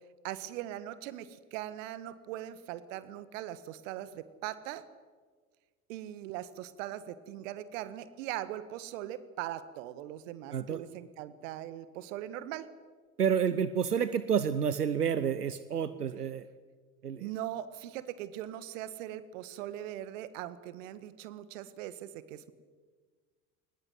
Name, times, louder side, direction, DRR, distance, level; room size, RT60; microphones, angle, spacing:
voice 1, 0.2-4.8 5.9-12.7 17.2-22.5, right 12 dB, 55° right, 14 dB, 1.8 m, -40 dB
voice 2, 10.5-10.8 13.2-16.5 17.0-17.3, right 7 dB, 80° right, 13 dB, 0.9 m, -29 dB
22.5 x 19.5 x 9.6 m, 1.5 s
figure-of-eight pair, 75°, 46 cm